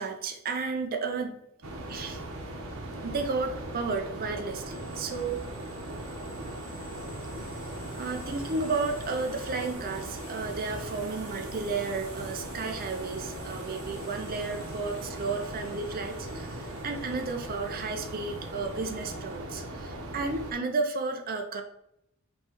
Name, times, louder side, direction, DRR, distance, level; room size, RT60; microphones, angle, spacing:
voice 1, 0.0-1.4 1.9-2.2 3.0-5.4 8.0-21.6, right 4 dB, 45° right, 4 dB, 0.5 m, -33 dB
sound 1, 1.6-20.5, right 1 dB, 80° right, 1.0 m, -39 dB
sound 2, 4.5-19.2, left 4 dB, 65° left, 1.0 m, -53 dB
5.5 x 3.1 x 3.0 m, 0.79 s
head